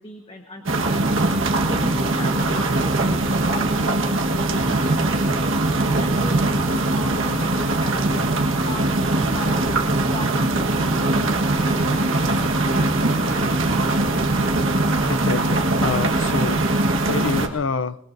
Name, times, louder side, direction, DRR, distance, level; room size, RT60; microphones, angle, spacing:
voice 1, 0.0-1.4 1.6-8.2 8.6-12.9 13.2-13.6 13.9-14.4, left 1 dB, 25° left, 4 dB, 1.2 m, -37 dB
sound 1, 0.7-17.5, right 2 dB, 70° right, 1.4 m, -21 dB
voice 2, 15.1-16.6 17.0-18.0, left 4 dB, 70° left, 13 dB, 0.6 m, -26 dB
25.5 x 21.0 x 2.7 m, 0.92 s
head